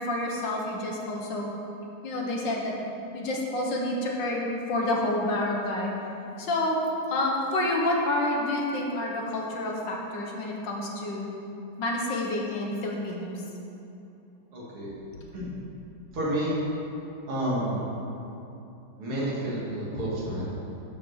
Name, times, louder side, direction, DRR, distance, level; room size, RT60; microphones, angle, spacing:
voice 1, 0.0-1.5 2.0-2.7 3.1-5.9 6.4-6.8 7.1-11.3 11.8-13.4, left 1 dB, 60° left, -1 dB, 1.7 m, -28 dB
voice 2, 14.5-15.0 15.3-15.5 16.1-16.6 17.3-17.8 19.0-20.4, right 1 dB, 85° right, -6 dB, 3.0 m, -30 dB
9.9 x 5.0 x 6.6 m, 2.8 s
omnidirectional pair, 2.3 m